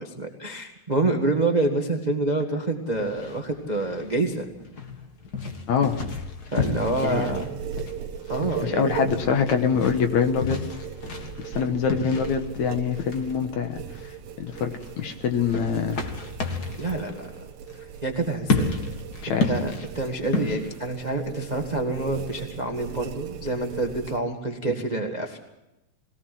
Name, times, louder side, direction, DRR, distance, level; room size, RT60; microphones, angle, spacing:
voice 1, 0.0-4.4 6.5-7.5 8.3-9.1 16.8-17.4 18.0-18.7 19.4-25.4, right 2 dB, 35° right, 3 dB, 0.6 m, -27 dB
sound 1, 2.9-20.8, left 3 dB, 40° left, 1.5 m, -32 dB
voice 2, 5.7-6.0 7.0-7.2 8.6-10.6 11.4-16.0 19.2-19.5, left 6 dB, 60° left, 6 dB, 2.3 m, -25 dB
sound 2, 6.8-24.2, right 8 dB, 75° right, 2.9 m, -38 dB
21.5 x 18.5 x 7.7 m, 0.94 s
omnidirectional pair, 4.2 m